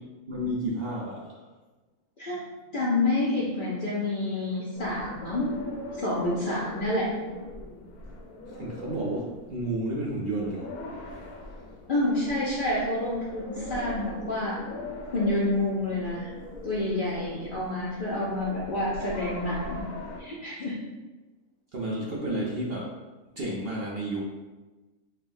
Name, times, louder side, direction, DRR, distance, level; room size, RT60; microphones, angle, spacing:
voice 1, 0.3-1.4 8.6-10.7 21.7-22.9 23.4-24.2, right 1 dB, 60° right, -5 dB, 0.6 m, -31 dB
voice 2, 2.7-5.6 5.9-7.1 11.9-14.6 15.1-16.3 16.6-19.8 20.2-20.7, left 2 dB, 55° left, -7 dB, 0.6 m, -28 dB
sound 1, 4.7-20.2, left 2 dB, 80° left, 1.1 m, -41 dB
5.6 x 2.3 x 2.6 m, 1.2 s
omnidirectional pair, 1.6 m